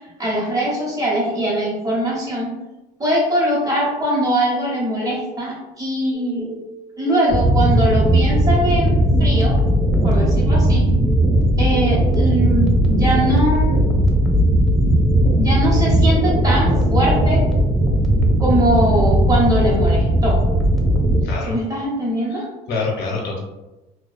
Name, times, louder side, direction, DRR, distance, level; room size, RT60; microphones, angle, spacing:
voice 1, 0.2-2.5 3.0-6.5 7.0-9.6 10.0-10.9 11.6-14.1 15.4-17.4 18.4-20.4 21.5-22.4, right 1 dB, 20° right, -5 dB, 0.9 m, -21 dB
Telephone, 6.1-21.4, right 1 dB, ahead, 0.4 m, -36 dB
sound 1, 7.3-21.2, right 1 dB, 70° right, 0.8 m, -17 dB
voice 2, 21.2-21.6 22.3-23.4, left 4 dB, 85° left, -1 dB, 0.7 m, -26 dB
2.3 x 2.2 x 2.5 m, 1.0 s
cardioid pair, 110°, 17 cm